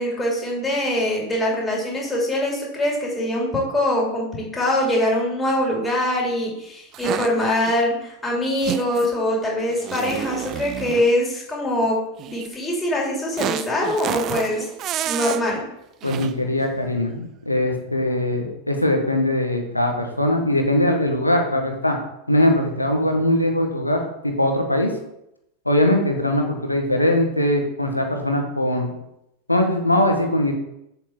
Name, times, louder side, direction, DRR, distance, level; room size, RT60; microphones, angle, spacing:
voice 1, 0.0-12.0 12.3-14.6 15.0-15.6, left 1 dB, 10° left, -3 dB, 3.2 m, -23 dB
sound 1, 6.9-7.7 8.6-9.1 9.7-11.2 12.2-12.5 13.4-15.5 16.0-16.4, right 11 dB, 35° right, 0.4 m, -30 dB
voice 2, 16.0-22.0 22.3-24.9 25.6-28.9 29.5-30.5, left 1 dB, 85° left, 4 dB, 1.4 m, -21 dB
7.9 x 7.3 x 4.6 m, 0.83 s
figure-of-eight pair, 90°, 0 cm